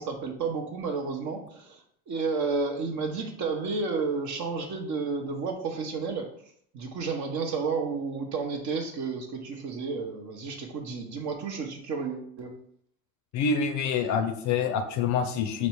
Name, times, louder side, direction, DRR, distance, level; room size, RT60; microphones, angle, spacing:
voice 1, 0.0-6.3 6.7-12.5, right 4 dB, 40° right, 4 dB, 0.9 m, -31 dB
voice 2, 13.3-15.7, left 6 dB, 40° left, 7 dB, 0.5 m, -26 dB
5.1 x 2.1 x 4.5 m, 0.65 s
hypercardioid pair, 75°, 44 cm